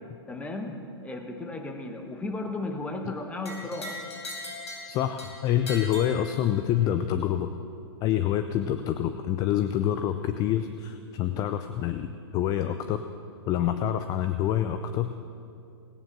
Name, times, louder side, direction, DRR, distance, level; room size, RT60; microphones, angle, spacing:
voice 1, 0.3-4.0, left 2 dB, 10° left, 4 dB, 1.3 m, -35 dB
sound 1, 3.4-6.8, left 1 dB, 85° left, 4.4 m, -40 dB
voice 2, 4.9-7.5 8.0-13.0 13.5-15.3, left 10 dB, 25° left, 9 dB, 0.5 m, -27 dB
17.5 x 9.7 x 6.1 m, 2.5 s
hypercardioid pair, 135°, 14 cm